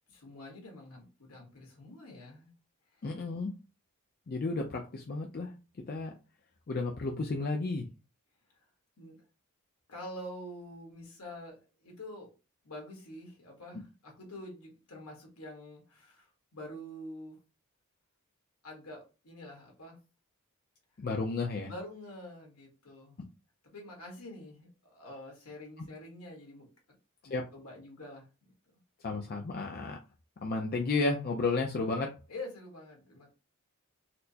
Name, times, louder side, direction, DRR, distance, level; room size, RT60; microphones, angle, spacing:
voice 1, 0.1-2.5 2.9-3.0 9.0-9.2 9.9-12.3 12.6-17.4 18.6-20.0 21.6-23.2 23.6-26.7 27.2-28.3 32.3-33.3, left 1 dB, 75° left, 0 dB, 1.4 m, -46 dB
voice 2, 3.0-3.5 4.3-5.5 5.9-6.1 6.7-7.9 21.0-21.7 27.3-27.4 29.0-30.0 30.4-32.1, left 3 dB, 45° left, 1 dB, 0.4 m, -32 dB
4.2 x 2.1 x 2.7 m, 0.31 s
head